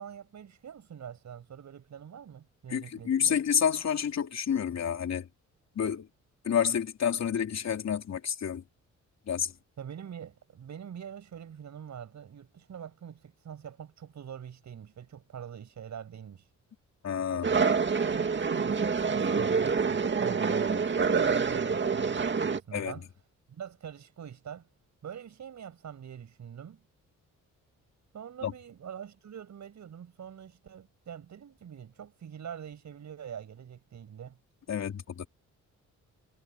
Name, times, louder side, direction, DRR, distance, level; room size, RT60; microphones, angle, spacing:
voice 1, 0.0-3.4 9.8-16.5 17.3-23.1 23.5-24.7 25.0-26.8 28.1-34.4, right 8 dB, 65° right, 7.0 m, -44 dB
voice 2, 2.7-5.3 5.7-6.1 6.4-8.6 9.3-9.5 17.0-17.5 22.7-22.9 28.4-28.5 34.7-35.3, left 8 dB, 60° left, 3.4 m, -29 dB
sound 1, 17.4-22.6, right 5 dB, 35° right, 2.3 m, -27 dB
cardioid pair, 85°, 31 cm